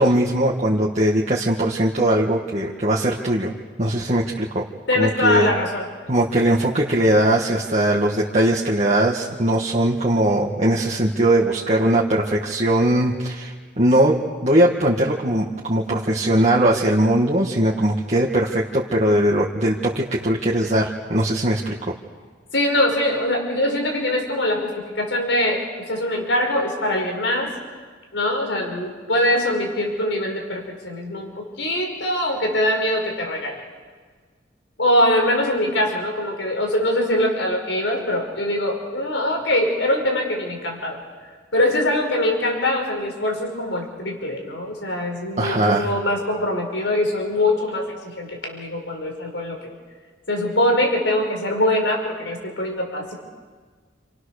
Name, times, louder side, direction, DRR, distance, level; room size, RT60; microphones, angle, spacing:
voice 1, 0.0-3.5 3.8-4.7 5.0-5.5 6.1-21.9 45.4-45.9, right 1 dB, 40° right, -3 dB, 1.8 m, -20 dB
voice 2, 4.9-5.8 22.5-25.6 25.9-27.5 28.1-33.5 34.8-41.0 41.5-49.6 50.3-53.1, left 1 dB, 80° left, 2 dB, 5.4 m, -22 dB
29.0 x 28.0 x 6.7 m, 1.5 s
head